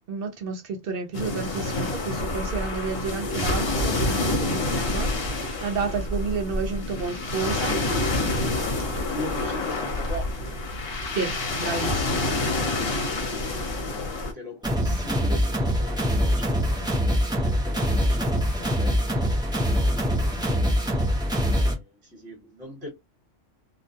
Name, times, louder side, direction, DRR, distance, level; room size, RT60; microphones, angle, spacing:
voice 1, 0.1-5.1 5.6-7.8 11.1-12.2 14.8-15.0, right 4 dB, 60° right, 0.6 m, -31 dB
sound 1, 1.1-14.3, left 2 dB, 55° left, 1.0 m, -27 dB
voice 2, 8.4-10.7 12.2-20.7 21.3-22.9, left 1 dB, 30° right, 1.2 m, -41 dB
sound 2, 14.6-21.7, equal, 5° right, 0.5 m, -24 dB
2.4 x 2.2 x 2.7 m
omnidirectional pair, 1.3 m